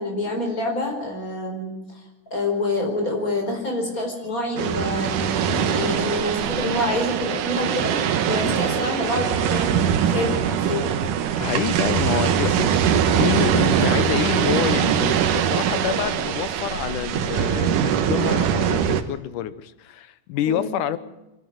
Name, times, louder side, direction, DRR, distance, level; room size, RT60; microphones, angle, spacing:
voice 1, 0.0-2.0 2.3-7.9 8.3-9.8 10.1-10.9 20.5-20.8, left 1 dB, 25° left, 1 dB, 5.0 m, -27 dB
sound 1, 4.6-19.0, right 8 dB, 75° right, 2.6 m, -22 dB
voice 2, 11.4-21.0, left 11 dB, 80° left, 14 dB, 2.4 m, -27 dB
24.5 x 11.5 x 9.4 m, 0.99 s
omnidirectional pair, 3.7 m